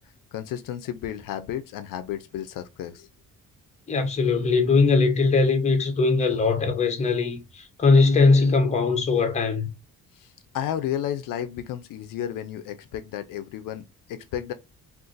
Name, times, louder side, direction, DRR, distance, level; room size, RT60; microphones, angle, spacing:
voice 1, 0.3-3.1 10.1-14.5, left 10 dB, 70° left, 0.5 m, -32 dB
voice 2, 3.9-9.7, left 4 dB, 20° left, 0.7 m, -20 dB
2.5 x 2.5 x 3.8 m
cardioid pair, 160°, 34 cm